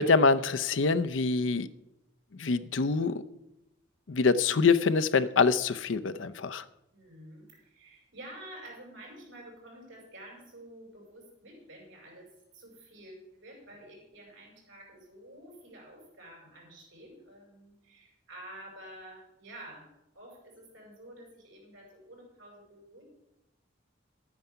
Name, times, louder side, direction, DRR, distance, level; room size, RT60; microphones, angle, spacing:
voice 1, 0.0-1.7 2.3-3.2 4.1-6.6, left 4 dB, 80° left, 12 dB, 0.6 m, -25 dB
voice 2, 6.9-12.3 12.5-19.9 20.1-23.0, right 1 dB, 85° right, -1 dB, 5.2 m, -49 dB
11.5 x 9.4 x 5.6 m, 0.90 s
head